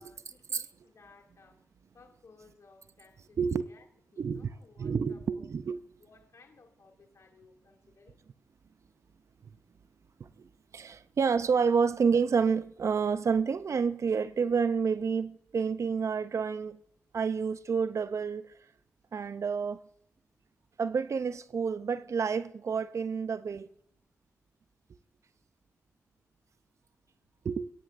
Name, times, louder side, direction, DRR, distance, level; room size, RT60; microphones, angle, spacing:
voice 1, 0.0-1.6 1.9-3.9 4.1-5.4 6.0-8.2, left 4 dB, 65° left, 2.3 m, -59 dB
voice 2, 4.2-4.5 4.8-5.8 10.2-16.8 17.1-18.5 19.1-19.8 20.8-23.7 27.4-27.7, right 5 dB, 65° right, 0.5 m, -29 dB
17.5 x 9.7 x 2.5 m
supercardioid pair, 40°, 5 cm